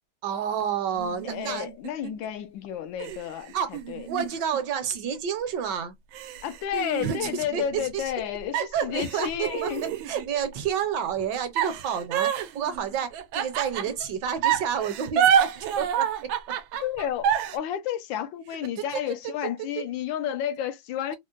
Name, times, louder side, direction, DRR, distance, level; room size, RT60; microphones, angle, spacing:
voice 1, 0.2-1.7 3.5-3.8 4.1-5.9 7.0-8.1 8.5-9.7 10.1-16.5 18.8-19.0 19.8-19.9, right 8 dB, 70° right, 1.3 m, -30 dB
sound 1, 0.9-2.3 3.0-5.2 5.6-5.7 6.1-8.2 8.5-10.5 11.6-14.1 14.4-17.6, right 9 dB, 90° right, 1.4 m, -28 dB
voice 2, 1.2-4.1 6.4-9.9 16.8-21.2, left 10 dB, 80° left, 1.3 m, -31 dB
4.4 x 2.1 x 2.4 m
omnidirectional pair, 2.1 m